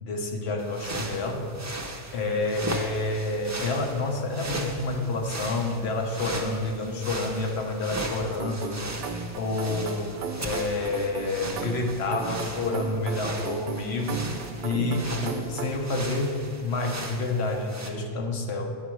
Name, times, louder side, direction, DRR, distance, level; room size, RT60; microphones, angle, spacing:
voice 1, 0.0-1.5 2.1-8.8 9.3-14.3 14.6-18.7, left 2 dB, 80° left, 2 dB, 1.1 m, -29 dB
sound 1, 0.6-17.9, right 1 dB, 20° right, 0.5 m, -37 dB
sound 2, 8.3-15.7, right 5 dB, 65° right, 0.7 m, -36 dB
9.3 x 4.1 x 6.1 m, 2.2 s
omnidirectional pair, 1.1 m